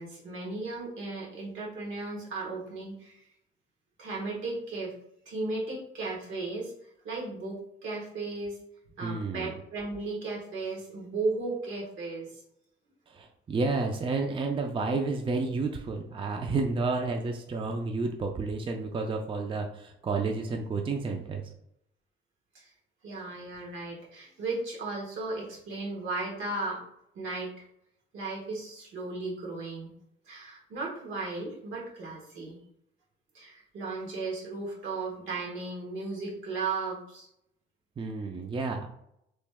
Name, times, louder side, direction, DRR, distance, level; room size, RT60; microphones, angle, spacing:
voice 1, 0.0-3.2 4.0-4.9 5.2-8.6 9.0-12.4 22.5-22.7 23.0-26.8 27.1-27.6 28.1-29.9 30.3-32.6 33.3-37.3, right 3 dB, 80° right, -3 dB, 1.3 m, -35 dB
voice 2, 9.0-9.5 13.1-21.4 38.0-38.9, right 3 dB, 25° right, 3 dB, 0.4 m, -31 dB
3.1 x 2.1 x 3.4 m, 0.75 s
cardioid pair, 90°, 20 cm